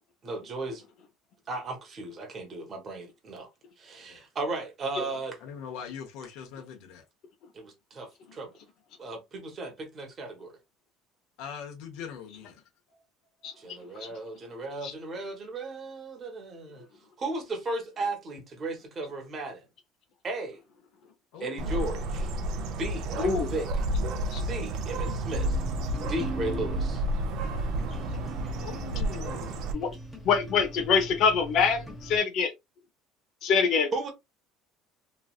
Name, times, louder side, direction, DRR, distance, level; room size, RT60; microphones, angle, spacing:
voice 1, 0.2-0.8 1.5-3.5 3.8-5.4 7.5-8.5 9.0-10.6 13.6-16.9 17.2-19.6 20.2-20.6 21.4-22.3 22.8-23.7 24.3-25.6 26.0-27.0 33.9-34.1, right 2 dB, 25° right, 1.0 m, -35 dB
voice 2, 5.4-7.0 11.4-12.6 21.3-22.1 28.6-29.8, left 7 dB, 70° left, 1.1 m, -42 dB
Bird, 21.6-29.7, right 1 dB, 55° right, 0.5 m, -31 dB
voice 3, 23.2-23.5 24.3-24.4 27.8-27.9 29.7-29.9 30.2-31.8 32.1-32.5 33.4-34.1, left 6 dB, 50° left, 0.7 m, -24 dB
Guitar Strumming (Semi-Truck Background noise), 24.9-32.2, right 1 dB, 5° left, 0.9 m, -41 dB
3.1 x 2.5 x 2.4 m
cardioid pair, 160°, 0 cm